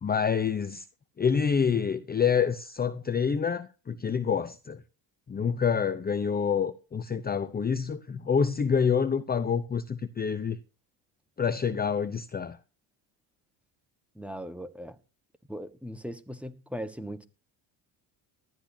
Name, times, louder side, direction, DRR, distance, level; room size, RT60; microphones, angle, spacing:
voice 1, 0.0-0.9 1.2-4.8 5.3-10.6 11.4-12.6, left 6 dB, 20° left, 0.7 m, -27 dB
voice 2, 14.1-15.0 15.5-17.3, equal, 5° right, 1.3 m, -39 dB
19.0 x 12.5 x 2.8 m
cardioid pair, 125°, 46 cm